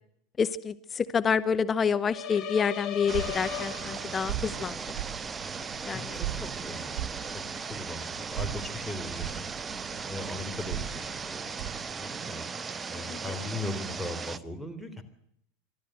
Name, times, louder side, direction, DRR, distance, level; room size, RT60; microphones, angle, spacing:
voice 1, 0.4-4.8 5.8-6.2 13.1-13.2, left 6 dB, 25° left, 13 dB, 0.8 m, -28 dB
sound 1, 2.1-4.4, left 8 dB, 50° left, 3.8 m, -37 dB
sound 2, 3.0-11.9, right 11 dB, 45° right, 6.0 m, -39 dB
sound 3, 3.1-14.4, right 5 dB, 25° right, 0.7 m, -37 dB
voice 2, 5.9-7.1 7.3-7.4 7.7-9.4 10.1-11.4 11.8-12.5 12.8-15.0, left 2 dB, ahead, 4 dB, 3.4 m, -39 dB
26.0 x 13.0 x 7.8 m, 0.71 s
figure-of-eight pair, 85°, 0 cm